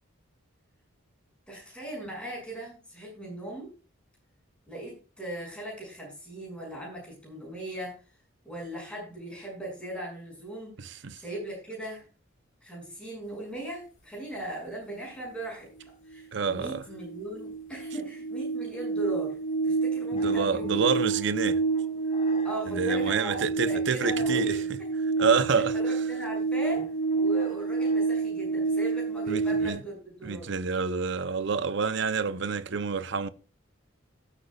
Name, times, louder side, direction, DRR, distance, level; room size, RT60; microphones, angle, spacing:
voice 1, 1.5-3.7 4.7-8.0 8.4-12.1 12.6-19.4 19.6-20.9 22.4-24.9 25.5-26.8 27.1-30.5, right 1 dB, 5° left, 6.2 m, -39 dB
voice 2, 10.8-11.2 16.3-16.8 20.1-21.6 22.7-24.6 25.2-26.0 29.3-29.8 30.2-33.3, right 5 dB, 55° right, 0.6 m, -28 dB
sound 1, 16.1-16.2 16.5-29.7, right 4 dB, 35° left, 1.9 m, -28 dB
18.5 x 8.3 x 2.3 m
head